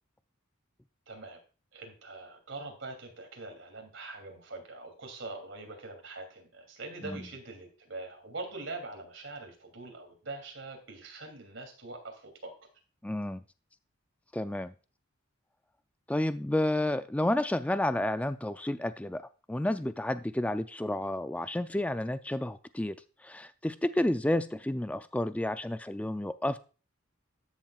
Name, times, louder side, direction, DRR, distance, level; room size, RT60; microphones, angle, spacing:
voice 1, 1.1-1.4 1.7-12.5, right 3 dB, 65° right, 2.9 m, -43 dB
voice 2, 13.0-13.4 14.3-14.7 16.1-23.0 23.2-26.6, left 1 dB, 5° left, 0.3 m, -31 dB
13.5 x 7.3 x 2.4 m
head